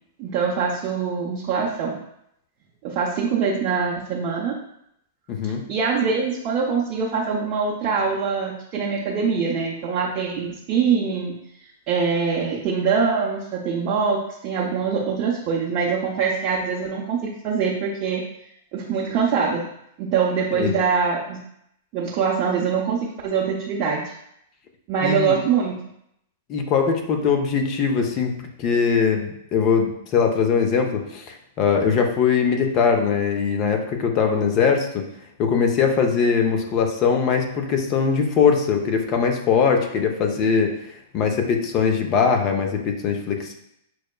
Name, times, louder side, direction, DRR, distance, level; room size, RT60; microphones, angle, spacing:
voice 1, 0.2-2.0 2.8-4.6 5.7-11.3 11.9-18.2 18.7-19.6 20.0-21.4 21.9-24.0 24.9-25.8, right 6 dB, 40° right, -4 dB, 0.6 m, -23 dB
voice 2, 5.3-5.6 20.5-20.7 25.0-25.3 26.5-35.0 35.4-40.7 41.1-43.5, left 6 dB, 40° left, 4 dB, 0.6 m, -21 dB
6.1 x 2.1 x 2.3 m, 0.76 s
figure-of-eight pair, 100°, 0 cm